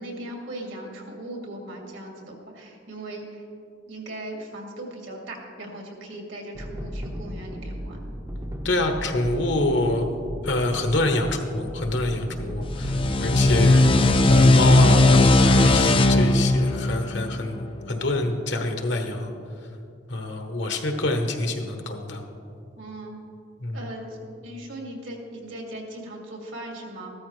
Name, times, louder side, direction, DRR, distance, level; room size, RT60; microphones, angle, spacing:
voice 1, 0.0-3.4 3.9-8.0 22.8-23.2 23.7-27.1, right 1 dB, 70° right, 0 dB, 2.3 m, -38 dB
sound 1, 6.5-15.8, equal, 15° right, 0.7 m, -36 dB
voice 2, 8.6-10.1 10.4-19.3 20.1-22.2 23.6-23.8, left 2 dB, 60° left, 4 dB, 1.2 m, -26 dB
sound 2, 12.6-18.0, left 2 dB, 25° left, 0.5 m, -18 dB
14.5 x 13.0 x 3.3 m, 2.5 s
head